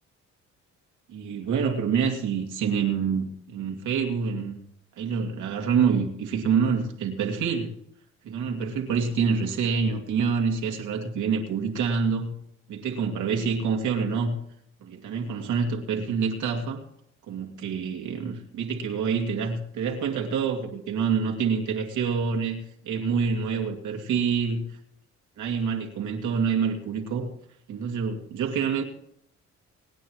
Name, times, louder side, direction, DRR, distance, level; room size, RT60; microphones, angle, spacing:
voice 1, 1.1-4.6 5.0-7.7 8.2-12.3 12.7-14.4 14.8-16.8 17.3-24.6 25.4-27.3 27.7-28.8, right 6 dB, 80° right, 2 dB, 2.6 m, -27 dB
25.5 x 9.3 x 3.2 m, 0.71 s
cardioid pair, 90°, 30 cm